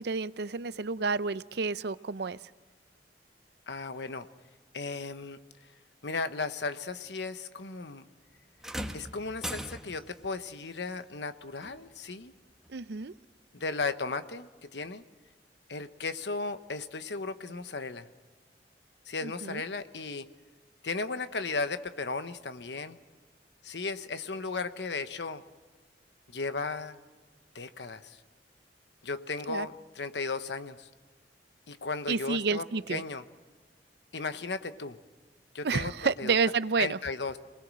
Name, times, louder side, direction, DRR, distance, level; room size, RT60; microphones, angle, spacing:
voice 1, 0.0-2.4 12.7-13.1 19.2-19.6 29.5-29.7 32.1-33.0 35.6-37.0, right 4 dB, 65° right, 16 dB, 0.6 m, -30 dB
voice 2, 3.7-4.3 4.7-5.4 6.0-8.0 8.9-12.3 13.5-15.0 15.7-18.1 19.1-20.3 20.8-23.0 23.6-25.4 26.3-27.0 27.5-28.2 29.0-30.9 31.7-33.2 34.1-35.0 35.5-36.3 36.8-37.4, left 3 dB, 75° left, 10 dB, 1.1 m, -35 dB
sound 1, 8.6-10.2 11.6-11.8 12.6-12.7, equal, 5° right, 1.2 m, -39 dB
27.5 x 20.0 x 6.3 m, 1.4 s
head